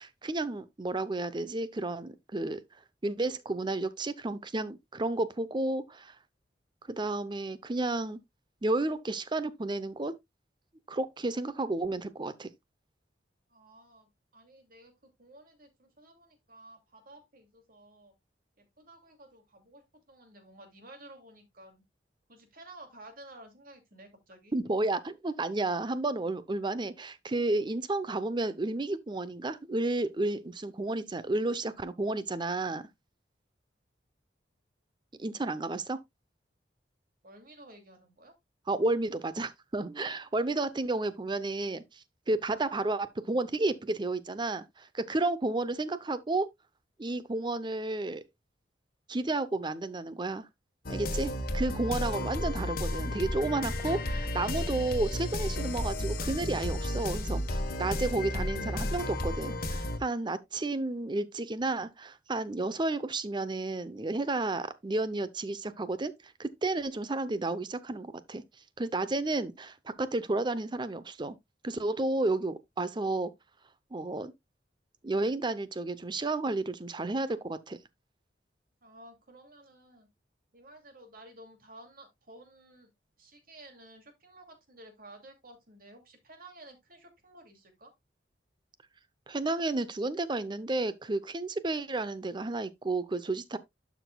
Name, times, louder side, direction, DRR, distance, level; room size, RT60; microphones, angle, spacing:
voice 1, 0.0-2.6 3.0-6.1 7.0-8.2 8.6-10.1 10.9-12.5 24.5-32.9 35.2-36.0 38.7-46.5 47.0-48.2 49.1-50.5 50.9-66.1 66.4-68.4 68.8-71.4 71.6-73.3 73.9-74.3 75.0-77.8 89.3-93.6, right 2 dB, 25° right, 0.6 m, -32 dB
voice 2, 13.5-14.9 15.2-18.1 18.6-21.8 22.3-24.5 37.2-38.3 78.8-80.1 80.5-82.9 83.2-87.9, right 1 dB, 55° right, 2.5 m, -53 dB
sound 1, 50.9-60.0, left 1 dB, 55° left, 1.3 m, -33 dB
11.5 x 6.1 x 2.2 m
head